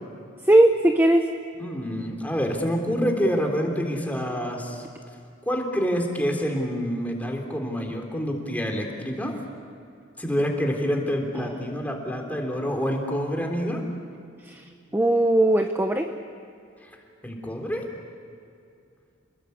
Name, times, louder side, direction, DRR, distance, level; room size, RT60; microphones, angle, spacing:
voice 1, 0.5-1.3 14.5-14.6 14.9-16.1, right 1 dB, 10° right, 5 dB, 0.9 m, -18 dB
voice 2, 1.6-4.8 5.5-9.3 10.2-13.8 17.2-17.8, equal, 10° left, 2 dB, 3.5 m, -27 dB
28.5 x 21.0 x 8.4 m, 2.5 s
head